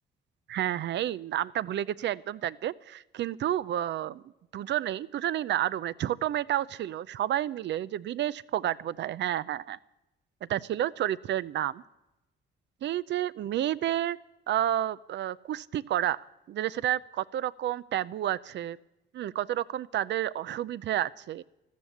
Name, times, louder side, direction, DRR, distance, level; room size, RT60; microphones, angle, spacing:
voice 1, 0.5-4.2 4.5-9.8 10.5-11.8 12.8-14.2 14.5-18.8 19.1-21.4, right 12 dB, 65° right, 18 dB, 0.5 m, -30 dB
13.5 x 13.5 x 7.1 m, 0.95 s
cardioid pair, 90°, 20 cm